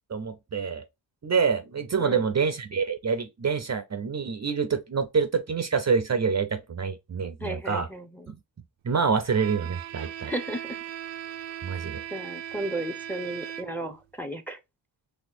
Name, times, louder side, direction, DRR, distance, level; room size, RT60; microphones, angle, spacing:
voice 1, 0.1-0.8 1.2-7.9 8.3-8.4 8.8-10.3 11.6-12.0, right 5 dB, 35° right, 0.7 m, -26 dB
voice 2, 7.4-8.3 10.3-10.8 12.1-14.6, right 1 dB, 5° left, 0.9 m, -34 dB
Bowed string instrument, 9.3-14.0, right 11 dB, 70° right, 0.6 m, -38 dB
4.2 x 2.8 x 2.6 m
supercardioid pair, 50°, 47 cm